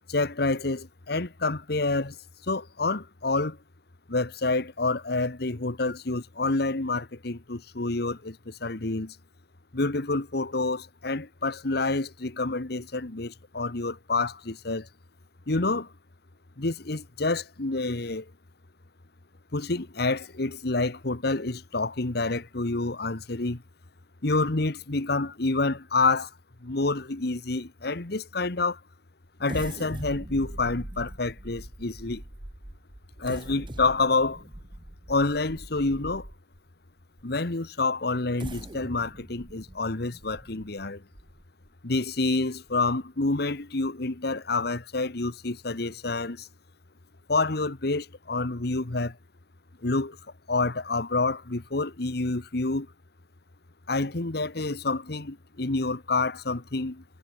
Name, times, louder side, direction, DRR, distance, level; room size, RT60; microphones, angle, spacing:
voice 1, 0.1-2.2 2.4-3.6 4.1-9.2 9.7-14.9 15.5-15.9 16.6-18.3 19.5-23.6 24.2-26.3 26.6-28.8 29.4-32.2 33.2-34.5 35.1-36.3 37.2-41.0 41.8-46.5 47.3-49.2 49.8-50.2 50.5-52.9 53.9-57.0, left 3 dB, 60° left, 1.3 m, -28 dB
sound 1, 29.4-36.6 37.2-37.3 38.2-41.7 42.2-42.3 42.7-42.9, right 1 dB, 25° right, 1.2 m, -42 dB
head